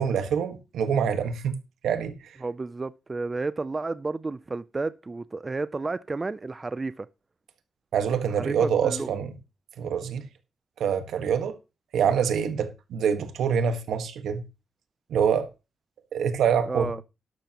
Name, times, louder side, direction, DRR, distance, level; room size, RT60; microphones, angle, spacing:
voice 1, 0.0-2.1 7.9-9.3 9.8-10.2 10.8-11.5 11.9-14.4 15.1-15.5 16.1-16.9, right 7 dB, 85° right, 1.5 m, -25 dB
voice 2, 2.4-7.1 8.3-9.2 16.7-17.0, right 3 dB, 25° right, 0.4 m, -32 dB
12.0 x 11.5 x 3.0 m
cardioid pair, 105°, 0 cm